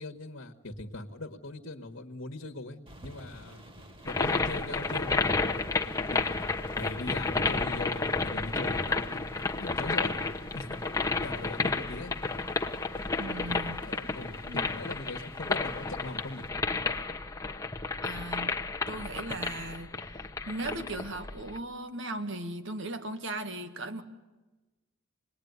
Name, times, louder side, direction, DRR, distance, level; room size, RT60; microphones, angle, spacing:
voice 1, 0.0-3.7 4.0-5.4 6.1-6.3 6.8-10.2 10.5-10.8 11.2-12.1 13.8-16.5, left 2 dB, 65° left, 4 dB, 1.7 m, -40 dB
sound 1, 2.9-16.5, equal, 25° right, 2.3 m, -52 dB
sound 2, 4.1-21.6, left 3 dB, 15° left, 1.2 m, -31 dB
voice 2, 13.2-13.8 14.4-14.6 18.0-18.6 18.9-19.9 20.5-24.0, right 2 dB, 60° right, 9 dB, 1.9 m, -37 dB
27.5 x 20.5 x 9.6 m, 1.1 s
head